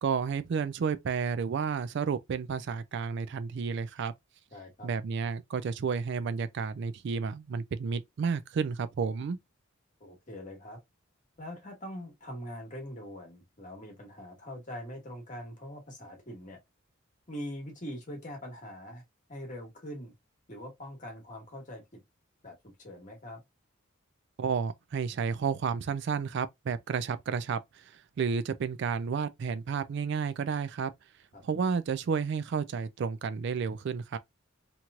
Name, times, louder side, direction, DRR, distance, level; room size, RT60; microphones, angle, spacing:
voice 1, 0.0-4.1 4.8-9.4 24.4-30.9 31.4-34.2, right 6 dB, 55° right, 0.3 m, -31 dB
voice 2, 4.5-4.9 10.0-10.8 11.4-16.6 17.3-19.0 19.3-20.1 20.5-22.0 22.4-23.4 31.3-31.4, equal, 35° left, 1.3 m, -43 dB
2.9 x 2.9 x 2.3 m
head